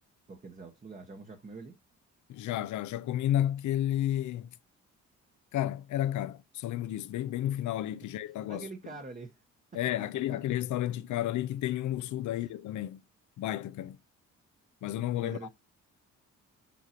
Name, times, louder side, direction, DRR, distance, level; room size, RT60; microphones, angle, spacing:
voice 1, 0.3-1.8 8.5-9.4 10.3-10.4 12.3-12.5 15.2-15.5, right 3 dB, 25° right, 1.1 m, -45 dB
voice 2, 2.3-4.5 5.5-8.7 9.7-13.0 13.4-14.0 14.8-15.5, left 12 dB, 75° left, 0.6 m, -32 dB
7.1 x 4.6 x 2.8 m
cardioid pair, 90°, 30 cm